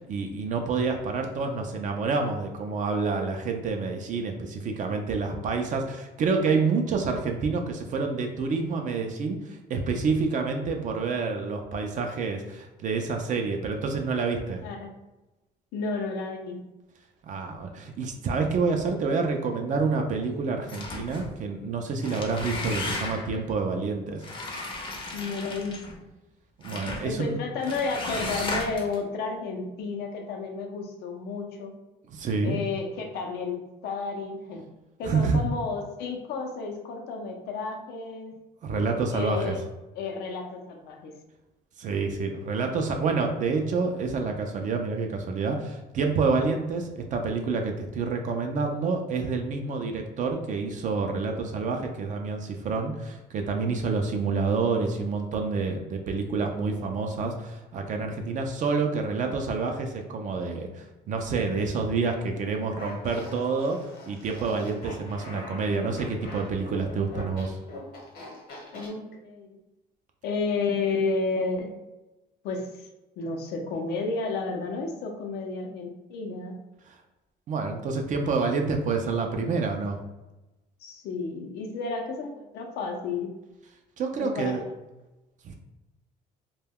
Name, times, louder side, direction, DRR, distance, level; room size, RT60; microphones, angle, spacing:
voice 1, 0.0-14.6 17.2-24.2 26.6-27.4 32.1-32.6 35.0-35.4 38.6-39.6 41.8-67.6 76.9-77.0 77.5-80.0 84.0-84.6 85.4-85.5, right 4 dB, 50° right, 4 dB, 0.4 m, -28 dB
voice 2, 15.7-16.6 25.1-26.1 27.0-31.7 32.4-34.6 35.0-38.3 39.1-39.6 39.9-41.1 68.7-69.6 70.2-71.7 72.4-72.9 73.2-76.5 80.8-83.3 84.2-84.7, left 4 dB, 75° left, 2 dB, 0.5 m, -32 dB
sound 1, 20.7-21.3 21.9-23.4 24.2-25.9 26.6-27.1 27.6-29.0, left 2 dB, 30° left, 0.5 m, -34 dB
Fart, 62.8-68.9, left 2 dB, 60° left, 0.9 m, -43 dB
2.2 x 2.1 x 3.4 m, 1.0 s
cardioid pair, 110°, 17 cm